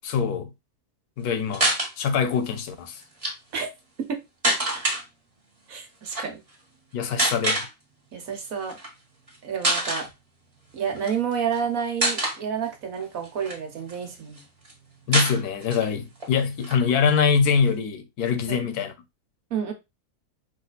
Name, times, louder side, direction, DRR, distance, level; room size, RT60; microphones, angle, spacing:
voice 1, 0.0-0.5 1.2-3.0 6.9-7.7 15.1-18.9, left 6 dB, 80° left, 1.3 m, -24 dB
sound 1, 1.5-1.9 3.0-3.3 4.4-5.0 6.1-6.3 7.2-7.7 8.7-8.9 9.3-9.4 9.6-10.1 11.0-11.6 12.0-12.4 13.0-14.0 14.4-14.5 14.7-14.8 15.1-15.9 16.2-16.3 16.6-17.7, right 1 dB, 25° right, 1.5 m, -25 dB
voice 2, 5.7-6.4 8.1-8.8 9.4-10.1 10.7-14.4 18.5-18.7 19.5-19.7, right 7 dB, 65° right, 1.5 m, -29 dB
4.9 x 2.7 x 3.9 m
omnidirectional pair, 1.6 m